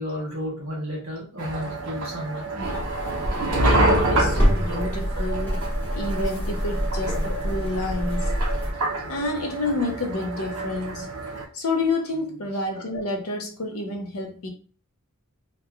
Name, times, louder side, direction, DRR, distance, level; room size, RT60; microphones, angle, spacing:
voice 1, 0.0-2.5 8.1-8.3, equal, 65° right, 1.1 m, -32 dB
sound 1, 1.4-11.4, right 2 dB, 90° right, 0.6 m, -27 dB
sound 2, 2.6-8.7, equal, 10° left, 1.0 m, -27 dB
voice 2, 3.5-8.6 9.1-11.1 11.5-14.5, left 2 dB, 80° left, 0.6 m, -29 dB
3.0 x 2.2 x 2.3 m
head